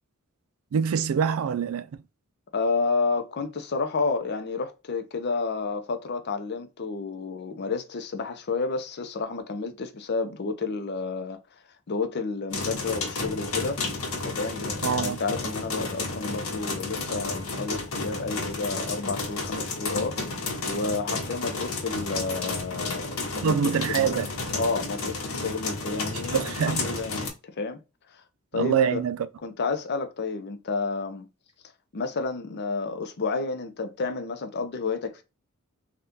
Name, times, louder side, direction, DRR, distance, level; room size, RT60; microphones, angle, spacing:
voice 1, 0.7-1.9 14.8-15.2 23.4-24.3 26.3-26.9 28.5-29.2, right 7 dB, 70° right, 0.3 m, -25 dB
voice 2, 2.5-11.4 11.9-13.8 14.2-20.2 20.6-27.8 28.1-28.2 28.5-29.0 29.4-31.3 31.9-35.2, left 4 dB, 50° left, 0.6 m, -30 dB
sound 1, 12.5-27.3, left 3 dB, 85° left, 1.1 m, -32 dB
3.6 x 2.3 x 2.7 m
head